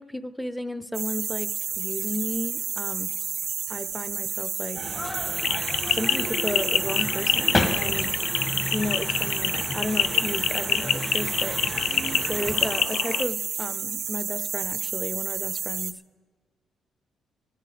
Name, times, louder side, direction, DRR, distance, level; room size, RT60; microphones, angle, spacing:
voice 1, 0.0-1.5 1.7-3.1 3.7-4.8 5.1-5.3 5.9-8.1 8.7-15.9, left 1 dB, ahead, 12 dB, 0.6 m, -33 dB
sound 1, 0.9-15.9, right 7 dB, 55° right, 0.4 m, -31 dB
sound 2, 4.7-12.8, left 2 dB, 30° left, 2.0 m, -32 dB
sound 3, 5.4-13.2, left 8 dB, 75° left, 0.4 m, -27 dB
28.0 x 10.0 x 3.3 m, 1.6 s
cardioid pair, 90°, 0 cm